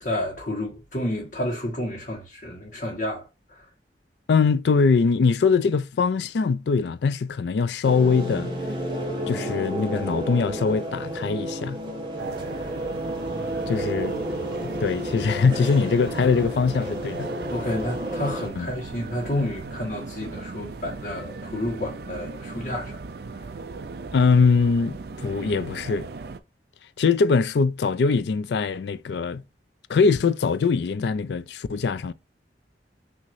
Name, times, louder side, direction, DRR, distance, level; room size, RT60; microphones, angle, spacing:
voice 1, 0.0-3.3 17.5-23.0 23.3-23.5, left 1 dB, 50° left, 1.4 m, -30 dB
voice 2, 4.3-8.5 9.3-11.8 13.7-14.2 14.8-17.3 18.6-18.7 24.1-26.1 27.0-29.4 29.9-32.1, left 5 dB, 65° left, 0.4 m, -22 dB
sound 1, 7.8-18.5, right 1 dB, 25° right, 1.3 m, -31 dB
sound 2, 12.2-26.4, right 3 dB, 60° right, 0.5 m, -37 dB
6.1 x 2.9 x 2.6 m
head